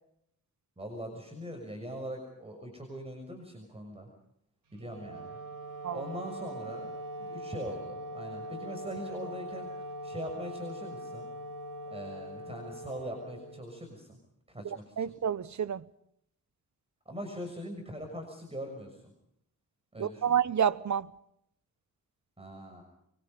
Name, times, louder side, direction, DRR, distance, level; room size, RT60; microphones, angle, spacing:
voice 1, 0.8-4.1 4.7-5.4 5.9-6.9 7.2-11.3 11.9-14.2 14.5-15.1 17.1-19.0 19.9-20.2 22.4-22.8, equal, 15° right, 6.4 m, -41 dB
Wind instrument woodwind instrument, 4.7-14.0, right 1 dB, 65° right, 4.5 m, -42 dB
voice 2, 14.6-15.8 20.0-21.1, right 8 dB, 50° right, 1.1 m, -29 dB
24.5 x 24.0 x 5.4 m
cardioid pair, 80°, 36 cm